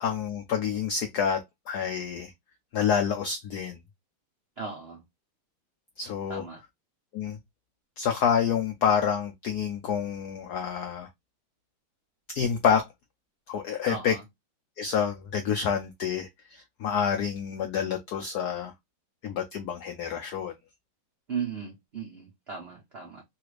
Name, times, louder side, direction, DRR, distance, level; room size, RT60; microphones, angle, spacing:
voice 1, 0.0-1.4 1.7-2.3 2.7-3.8 6.0-6.5 7.1-7.4 8.0-11.1 12.3-12.9 13.5-14.1 14.8-18.7 19.2-20.5, left 7 dB, 85° left, 0.8 m, -28 dB
voice 2, 4.6-5.0 6.3-6.6 13.8-14.2 21.3-23.2, right 6 dB, 75° right, 0.5 m, -36 dB
3.3 x 2.4 x 3.1 m
omnidirectional pair, 2.3 m